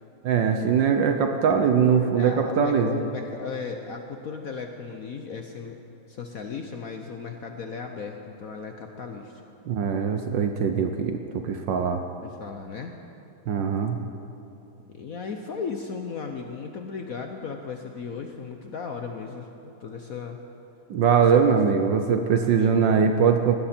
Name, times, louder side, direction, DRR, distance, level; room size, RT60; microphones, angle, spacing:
voice 1, 0.2-3.0 9.7-12.0 13.5-14.0 20.9-23.5, right 6 dB, 65° right, 5 dB, 1.4 m, -22 dB
voice 2, 2.2-5.8 6.1-9.3 12.2-12.9 14.9-20.4 22.4-22.9, left 5 dB, 60° left, 4 dB, 0.9 m, -36 dB
19.0 x 16.0 x 4.4 m, 3.0 s
omnidirectional pair, 2.3 m